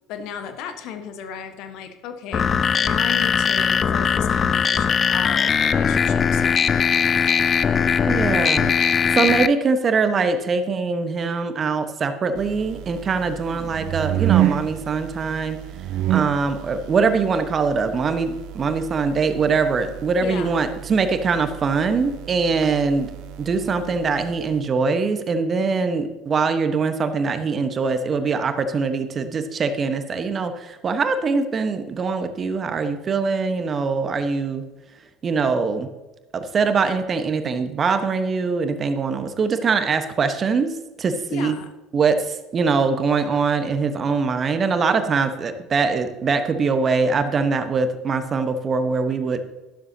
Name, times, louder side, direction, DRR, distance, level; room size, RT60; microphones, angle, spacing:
voice 1, 0.1-2.5 2.8-7.5 13.5-13.9 20.2-20.5 41.3-41.7, left 7 dB, 60° left, 7 dB, 1.4 m, -35 dB
sound 1, 2.3-9.5, left 6 dB, 35° left, 0.5 m, -20 dB
voice 2, 8.1-15.6 16.1-23.1 23.4-34.7 35.2-35.9 36.3-41.6 41.9-49.4, right 4 dB, 35° right, 9 dB, 1.2 m, -22 dB
sound 2, 12.4-24.6, right 12 dB, 60° right, 0.7 m, -29 dB
13.0 x 12.0 x 2.9 m, 1.1 s
hypercardioid pair, 70°, 0 cm